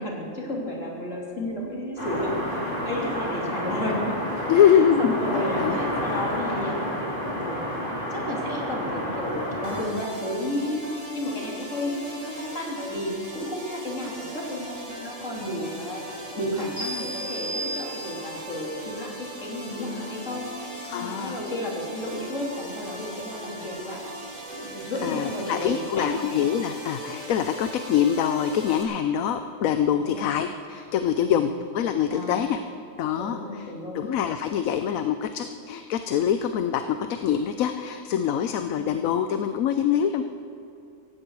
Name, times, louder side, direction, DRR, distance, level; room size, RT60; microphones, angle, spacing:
voice 1, 0.0-4.1 4.5-6.8 7.3-7.8 8.1-24.0 24.5-26.1 30.0-30.3 31.1-31.5 32.0-32.4 33.2-34.0, left 1 dB, 65° left, -3 dB, 3.5 m, -32 dB
sound 1, 2.0-9.8, equal, 40° left, 3.4 m, -30 dB
voice 2, 4.5-5.8 20.8-21.4 25.0-32.6 33.0-33.7 33.9-40.2, left 9 dB, 80° left, 9 dB, 1.1 m, -24 dB
sound 2, 9.6-28.8, equal, 25° right, 3.7 m, -39 dB
sound 3, 16.8-18.5, right 1 dB, 50° right, 5.2 m, -34 dB
17.0 x 15.5 x 4.7 m, 2.7 s
omnidirectional pair, 1.4 m